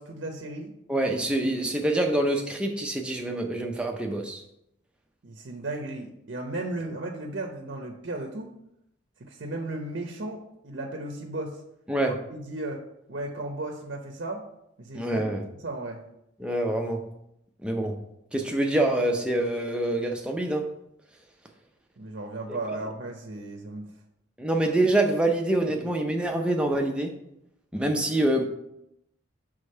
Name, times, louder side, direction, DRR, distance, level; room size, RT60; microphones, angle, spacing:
voice 1, 0.0-0.7 5.2-8.5 9.2-11.6 12.0-12.8 13.1-14.4 14.8-15.2 15.6-16.0 22.0-23.9, right 2 dB, 60° right, 2 dB, 0.7 m, -35 dB
voice 2, 0.9-4.4 11.9-12.2 14.9-15.5 16.4-17.1 17.6-18.0 18.3-20.7 22.5-22.6 24.4-27.1 27.7-28.5, right 1 dB, 5° right, 2 dB, 0.5 m, -26 dB
5.2 x 3.5 x 5.5 m, 0.81 s
head